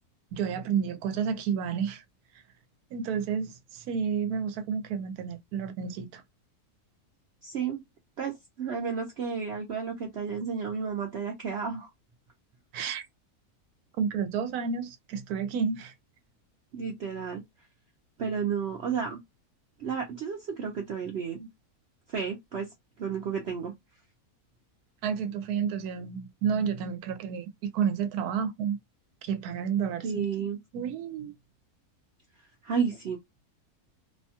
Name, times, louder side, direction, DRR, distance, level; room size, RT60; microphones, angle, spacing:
voice 1, 0.3-2.0 2.9-6.2 12.7-13.1 14.0-15.9 25.0-28.8 29.2-30.3 30.7-31.3, right 7 dB, 80° right, 1.1 m, -30 dB
voice 2, 7.4-7.8 8.2-11.9 16.7-17.4 18.2-19.2 19.8-21.5 22.1-22.7 23.0-23.7 30.0-30.6 32.6-33.2, right 6 dB, 60° right, 0.7 m, -32 dB
2.7 x 2.2 x 2.7 m
omnidirectional pair, 1.6 m